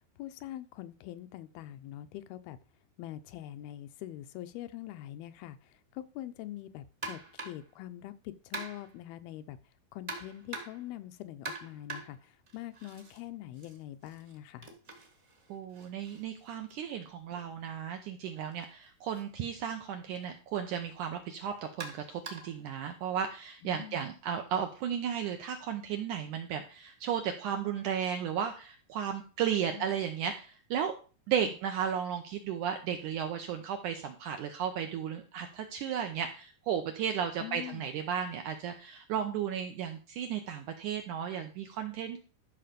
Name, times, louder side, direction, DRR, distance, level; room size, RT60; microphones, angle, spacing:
voice 1, 0.2-2.6 3.0-7.2 7.4-9.6 9.9-14.7 23.6-24.1 29.7-30.0 31.4-31.5 37.4-37.9, left 13 dB, 80° left, 11 dB, 2.4 m, -44 dB
sound 1, 7.0-7.7 8.5-9.0 10.1-10.9 11.4-13.2 13.5-17.4 18.5-18.7 19.1-19.2 20.2-20.3 21.8-22.6, right 3 dB, 40° right, 1.0 m, -44 dB
voice 2, 15.5-30.9 31.3-42.2, right 8 dB, 75° right, 5 dB, 1.9 m, -34 dB
12.5 x 5.6 x 5.1 m, 0.35 s
omnidirectional pair, 4.5 m